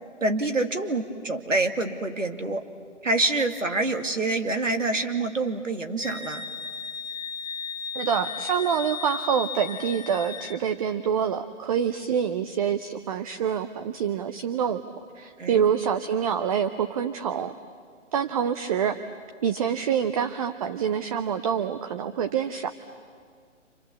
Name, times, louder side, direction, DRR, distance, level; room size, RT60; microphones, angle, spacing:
voice 1, 0.2-2.6 3.0-6.4 15.4-15.6, right 2 dB, 85° right, 5 dB, 2.4 m, -26 dB
Wind instrument woodwind instrument, 6.0-10.6, left 6 dB, 35° left, 1.2 m, -35 dB
voice 2, 7.9-14.8 15.1-17.5 18.1-19.0 19.4-22.7, right 8 dB, 30° right, 9 dB, 0.7 m, -26 dB
30.0 x 27.0 x 7.2 m, 2.1 s
figure-of-eight pair, 135°, 37 cm